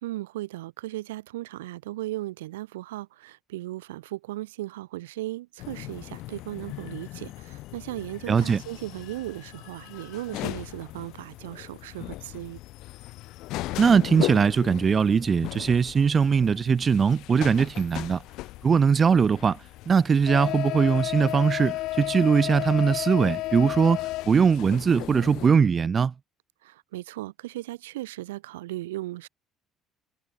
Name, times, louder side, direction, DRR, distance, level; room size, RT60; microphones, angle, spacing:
voice 1, 0.0-12.6 26.6-29.3, right 17 dB, 80° right, 1.2 m, -36 dB
sound 1, 5.6-25.5, left 18 dB, 65° left, 0.6 m, -35 dB
voice 2, 8.3-8.6 13.8-18.2 18.6-26.1, right 6 dB, 40° right, 0.4 m, -21 dB
hypercardioid pair, 55°, 0 cm